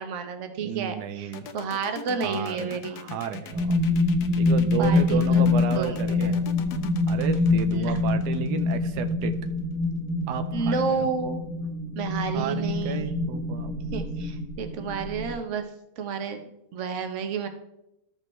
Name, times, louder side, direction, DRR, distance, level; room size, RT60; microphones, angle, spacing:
voice 1, 0.0-3.0 4.8-5.4 5.7-6.3 7.7-8.0 10.5-11.4 11.9-13.1 13.9-15.7 16.0-17.5, right 5 dB, 55° right, 7 dB, 1.1 m, -31 dB
voice 2, 0.6-1.5 2.2-3.8 4.4-6.5 7.1-9.4 10.3-11.1 12.3-13.7, right 9 dB, 85° right, 9 dB, 1.2 m, -33 dB
sound 1, 1.3-9.1, left 7 dB, 80° left, 1.2 m, -39 dB
sound 2, 3.5-15.3, left 3 dB, 50° left, 1.4 m, -25 dB
14.0 x 5.4 x 3.1 m, 0.85 s
omnidirectional pair, 1.7 m